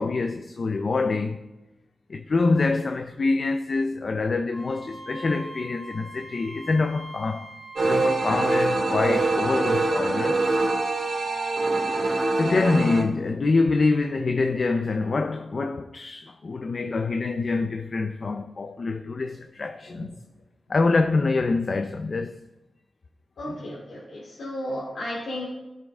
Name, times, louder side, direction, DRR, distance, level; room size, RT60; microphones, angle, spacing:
voice 1, 0.0-1.4 2.1-7.5 7.8-10.5 12.0-12.1 12.4-20.1 20.7-22.4, left 3 dB, 50° left, 0.6 m, -25 dB
Wind instrument woodwind instrument, 4.5-8.6, right 1 dB, 15° right, 1.7 m, -42 dB
sound 1, 7.8-13.0, right 3 dB, 55° right, 2.4 m, -24 dB
voice 2, 23.4-25.4, left 1 dB, 80° left, 3.0 m, -34 dB
15.5 x 6.7 x 3.7 m
wide cardioid pair, 105°, 0 cm